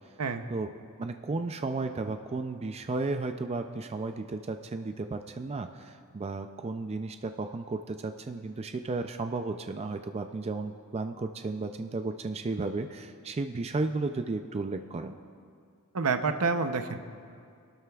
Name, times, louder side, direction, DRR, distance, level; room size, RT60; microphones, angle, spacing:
voice 1, 1.0-15.2, right 3 dB, 30° right, 7 dB, 0.4 m, -34 dB
voice 2, 15.9-17.0, right 4 dB, 75° right, 8 dB, 0.7 m, -28 dB
25.5 x 12.5 x 2.4 m, 2.3 s
head